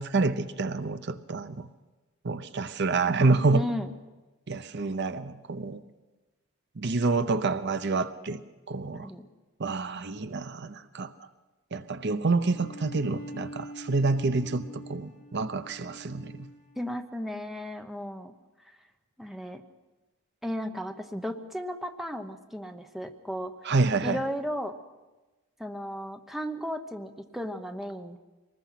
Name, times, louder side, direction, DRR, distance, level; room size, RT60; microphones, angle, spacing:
voice 1, 0.0-1.7 2.2-3.6 4.5-5.8 6.8-8.4 8.7-9.1 9.6-11.1 11.7-16.4 23.6-24.2, right 3 dB, 50° right, 0.7 m, -28 dB
voice 2, 3.5-3.9 8.9-9.3 16.8-18.3 19.2-19.6 20.4-23.5 24.0-24.8 25.6-28.2, equal, ahead, 1.0 m, -35 dB
Bowed string instrument, 12.4-17.1, right 1 dB, 35° left, 3.3 m, -45 dB
24.0 x 20.0 x 5.9 m
head